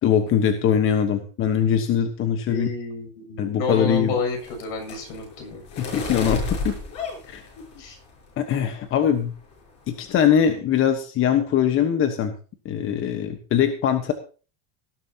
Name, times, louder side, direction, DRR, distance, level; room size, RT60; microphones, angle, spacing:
voice 1, 0.0-2.7 3.4-4.1 5.8-6.8 7.3-7.4 8.4-9.3 9.9-12.3 12.6-14.1, left 8 dB, 35° left, 7 dB, 1.2 m, -22 dB
voice 2, 2.5-5.9 7.8-8.0, left 4 dB, 70° left, 3 dB, 7.6 m, -30 dB
sound 1, 3.7-8.2 8.6-9.0 9.3-9.6 9.9-10.5, left 3 dB, 50° left, 7.4 m, -33 dB
18.5 x 11.5 x 2.9 m, 0.38 s
cardioid pair, 150°, 36 cm